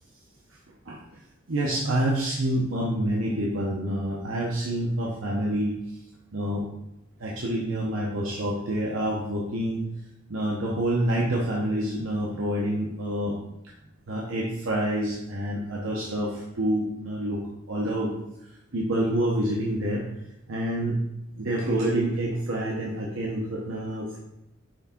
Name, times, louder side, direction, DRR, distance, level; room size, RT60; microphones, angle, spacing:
voice 1, 1.5-5.8 6.3-6.7 7.2-9.8 10.3-13.4 14.1-17.4 17.7-18.2 18.7-20.0 20.5-21.0 21.4-24.2, right 1 dB, 85° right, -4 dB, 1.0 m, -27 dB
6.3 x 3.6 x 4.4 m, 0.85 s
head